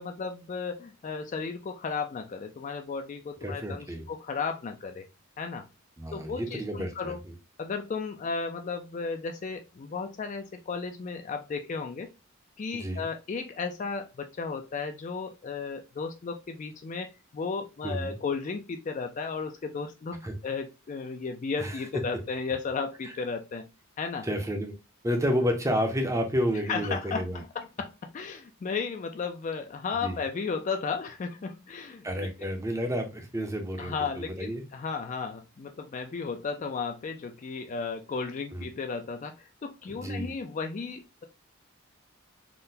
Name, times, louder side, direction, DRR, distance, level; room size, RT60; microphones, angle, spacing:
voice 1, 0.0-5.1 5.4-5.6 6.1-7.2 7.6-12.1 12.6-17.1 17.3-23.6 24.0-24.3 26.7-32.3 33.8-41.2, left 5 dB, 35° left, 5 dB, 0.3 m, -34 dB
voice 2, 3.4-4.1 6.0-7.3 12.7-13.0 17.8-18.2 20.2-20.3 21.6-21.8 24.2-24.7 25.0-27.4 30.0-30.2 32.0-34.6 38.5-38.7 39.9-40.3, equal, 15° right, 4 dB, 0.5 m, -30 dB
3.7 x 2.1 x 2.6 m, 0.27 s
head